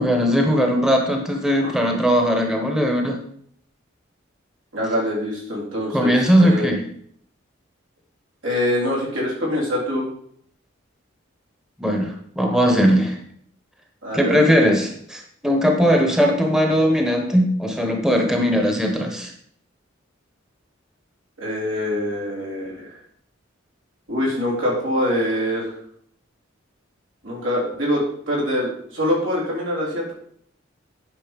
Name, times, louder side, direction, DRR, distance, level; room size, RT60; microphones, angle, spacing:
voice 1, 0.0-3.2 5.9-6.8 11.8-13.2 14.1-19.3, equal, 5° right, 2 dB, 1.0 m, -19 dB
voice 2, 4.7-6.7 8.4-10.1 14.0-14.6 21.4-23.0 24.1-25.8 27.2-30.1, left 1 dB, 80° right, -4 dB, 3.8 m, -24 dB
9.4 x 5.5 x 5.2 m, 0.66 s
head